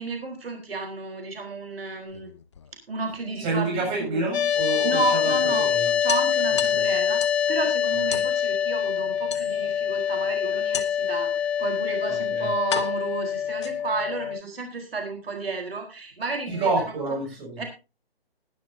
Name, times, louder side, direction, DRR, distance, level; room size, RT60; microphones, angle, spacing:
voice 1, 0.0-2.3 2.9-4.2 4.8-5.7 6.0-16.7 17.6-17.7, right 3 dB, 65° right, 3 dB, 4.3 m, -32 dB
sound 1, 2.0-3.1 4.6-4.7 5.1-5.2 5.5-5.6 6.1-7.5 8.1-8.3 9.3-9.9 10.7-11.2 12.0-12.1 12.7-14.1, left 7 dB, 30° left, 0.8 m, -34 dB
voice 2, 3.4-5.9 6.7-6.9 8.1-8.2 12.3-12.5 16.5-17.6, right 3 dB, 15° right, -2 dB, 7.4 m, -28 dB
sound 2, 4.3-14.4, left 8 dB, 85° left, 0.6 m, -25 dB
19.5 x 11.0 x 2.8 m, 0.30 s
hypercardioid pair, 160°, 31 cm